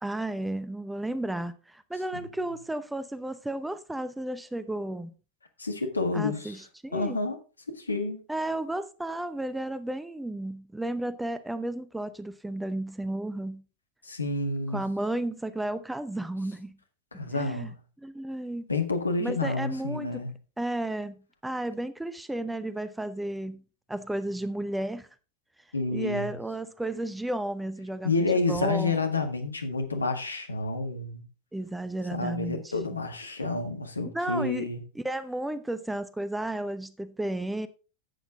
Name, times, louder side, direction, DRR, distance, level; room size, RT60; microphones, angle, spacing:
voice 1, 0.0-5.1 6.1-7.2 8.3-13.6 14.7-16.8 17.3-17.7 18.0-18.7 19.2-20.2 20.6-23.6 23.9-25.1 25.9-28.1 28.5-29.0 31.5-32.7 34.1-34.7 34.9-37.7, right 1 dB, 5° right, 0.7 m, -33 dB
voice 2, 5.6-6.6 6.9-7.4 7.8-8.2 14.0-14.8 17.1-17.8 18.7-20.3 25.7-26.3 28.0-31.2 32.1-34.8, left 3 dB, 80° left, 1.6 m, -29 dB
10.5 x 8.1 x 3.7 m
figure-of-eight pair, 90°, 0 cm